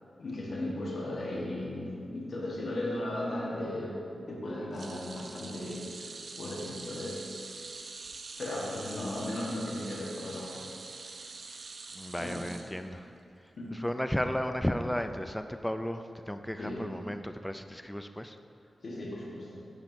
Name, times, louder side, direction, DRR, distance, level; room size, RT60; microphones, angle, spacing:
voice 1, 0.2-7.2 8.4-10.6 12.2-12.4 13.6-13.8 16.6-16.9 18.8-19.6, left 1 dB, 70° left, -4 dB, 1.3 m, -36 dB
sound 1, 4.7-13.2 13.6-13.8 15.0-15.1, right 4 dB, 75° right, 0.6 m, -45 dB
voice 2, 11.9-13.1 13.7-18.4, equal, 5° left, 7 dB, 0.3 m, -34 dB
10.5 x 7.5 x 2.6 m, 2.5 s
wide cardioid pair, 90°, 0 cm